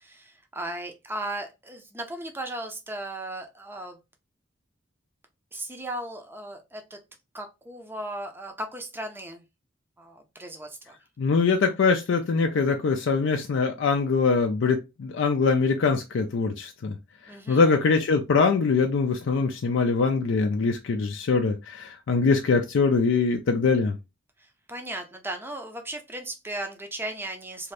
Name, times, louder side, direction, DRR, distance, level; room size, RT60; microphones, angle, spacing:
voice 1, 0.0-4.0 5.5-7.0 7.3-9.4 10.0-11.0 17.3-17.6 24.7-27.7, right 1 dB, 10° right, 0.5 m, -36 dB
voice 2, 11.2-17.0 17.5-24.0, left 4 dB, 65° left, 0.4 m, -23 dB
2.7 x 2.5 x 3.2 m
head